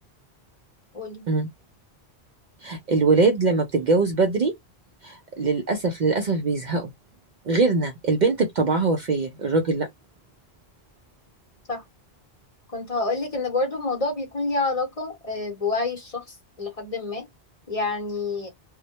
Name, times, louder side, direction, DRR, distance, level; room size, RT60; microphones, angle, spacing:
voice 1, 0.9-1.3 11.7-11.8 12.7-17.3 17.7-18.5, left 3 dB, 35° left, 0.8 m, -28 dB
voice 2, 2.6-4.5 5.0-6.9 7.5-9.9, right 3 dB, 55° right, 0.6 m, -22 dB
2.1 x 2.1 x 2.8 m
omnidirectional pair, 1.1 m